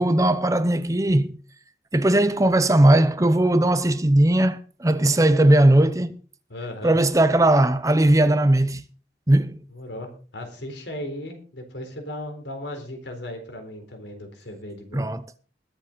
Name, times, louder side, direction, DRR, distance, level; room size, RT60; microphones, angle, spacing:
voice 1, 0.0-1.3 1.9-6.2 6.8-8.8 9.3-9.6 14.9-15.3, right 1 dB, 20° right, 0.7 m, -18 dB
voice 2, 6.5-7.0 9.7-15.1, left 1 dB, 80° left, 4.0 m, -36 dB
21.5 x 7.5 x 4.0 m
head